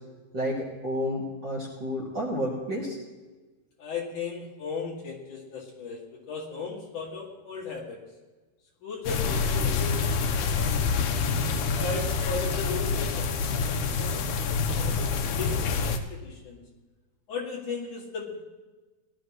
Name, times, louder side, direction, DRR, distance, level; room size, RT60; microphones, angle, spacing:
voice 1, 0.3-3.0, equal, 40° right, -5 dB, 1.8 m, -30 dB
voice 2, 3.8-8.0 8.8-10.5 11.8-14.3 14.8-16.6 17.3-18.4, left 4 dB, 55° left, -3 dB, 3.4 m, -36 dB
sound 1, 9.0-16.0, left 5 dB, 70° left, 2.0 m, -27 dB
18.5 x 12.5 x 3.1 m, 1.2 s
omnidirectional pair, 4.5 m